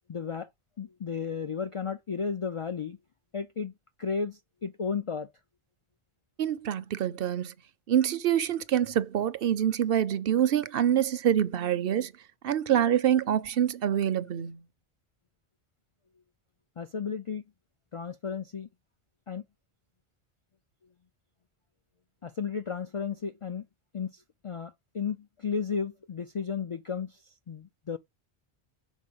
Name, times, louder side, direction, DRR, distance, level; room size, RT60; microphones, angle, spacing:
voice 1, 0.1-0.5 0.8-3.0 3.3-3.7 4.0-5.3 16.8-17.4 17.9-18.7 19.3-19.4 22.2-23.7 23.9-28.0, left 6 dB, 55° left, 0.3 m, -34 dB
voice 2, 6.4-7.5 7.9-12.1 12.4-14.6, right 10 dB, 65° right, 0.8 m, -26 dB
6.3 x 4.2 x 5.4 m
omnidirectional pair, 1.1 m